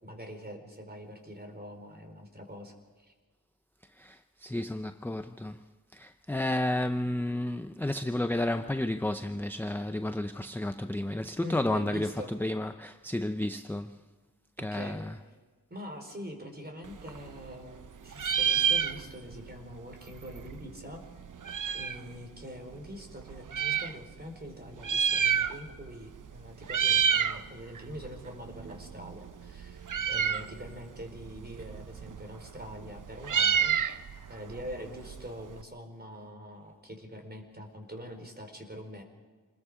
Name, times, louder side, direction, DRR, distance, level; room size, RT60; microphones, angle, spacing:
voice 1, 0.0-3.1 11.4-12.3 14.6-15.0 15.7-21.0 21.7-33.8 34.3-39.0, equal, 25° right, 4.5 m, -44 dB
voice 2, 4.0-5.6 5.9-12.1 12.4-14.0 14.6-15.1, left 1 dB, 5° left, 0.6 m, -32 dB
Meow, 16.9-17.9 18.1-19.4 19.7-19.8 20.0-22.1 22.7-23.9 24.7-25.9 26.1-26.4 26.6-27.4 27.8-35.6, right 7 dB, 60° right, 0.8 m, -29 dB
27.5 x 21.0 x 5.0 m
wide cardioid pair, 95°, 36 cm